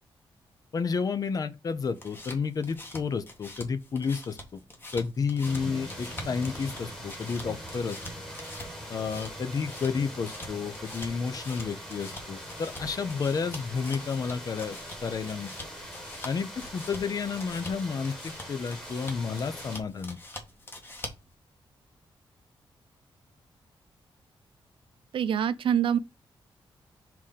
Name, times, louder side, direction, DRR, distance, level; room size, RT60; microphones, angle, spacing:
voice 1, 0.7-4.6 4.9-8.0 8.9-14.8 15.0-15.5 16.2-20.2, left 5 dB, 45° left, 0.7 m, -31 dB
sound 1, 1.8-21.3, left 2 dB, 25° left, 1.4 m, -45 dB
sound 2, 5.4-19.8, equal, 5° left, 1.7 m, -42 dB
voice 2, 25.1-26.0, right 9 dB, 70° right, 0.6 m, -25 dB
4.7 x 3.8 x 5.6 m
wide cardioid pair, 155°, 9 cm